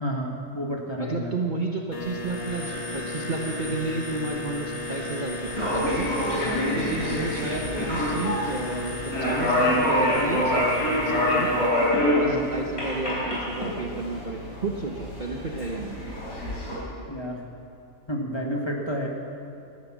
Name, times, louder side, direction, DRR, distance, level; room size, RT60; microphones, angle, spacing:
voice 1, 0.0-1.3 6.5-6.7 12.2-12.5 17.1-17.4 18.1-19.1, equal, 20° left, 0 dB, 1.8 m, -30 dB
voice 2, 1.0-6.1 6.6-11.6 12.0-16.0, right 2 dB, 35° right, 1 dB, 1.0 m, -32 dB
sound 1, 1.9-11.7, left 2 dB, 50° left, 1.8 m, -34 dB
sound 2, 5.4-16.8, left 1 dB, 70° left, 4.4 m, -26 dB
17.5 x 13.0 x 6.3 m, 2.7 s
omnidirectional pair, 1.6 m